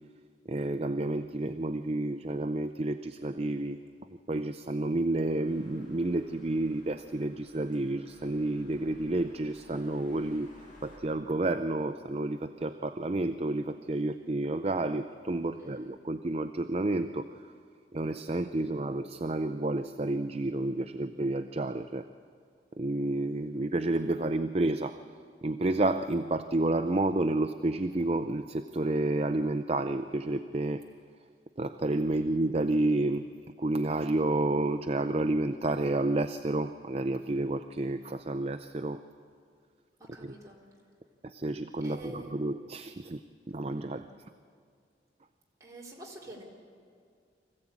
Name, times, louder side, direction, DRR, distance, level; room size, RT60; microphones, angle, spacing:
voice 1, 0.5-3.8 4.1-10.5 10.8-17.3 17.9-22.0 22.8-25.0 25.4-30.8 31.6-33.2 33.6-39.0 41.2-43.2 43.5-44.1, right 2 dB, 35° right, 9 dB, 0.5 m, -30 dB
sound 1, 5.4-11.0, equal, 50° left, 5.4 m, -57 dB
voice 2, 15.5-16.0 18.6-18.8 32.1-32.5 40.0-40.6 41.8-42.5 43.7-44.0 45.6-46.4, right 1 dB, 20° right, -3 dB, 3.7 m, -49 dB
24.5 x 15.5 x 8.6 m, 2.2 s
head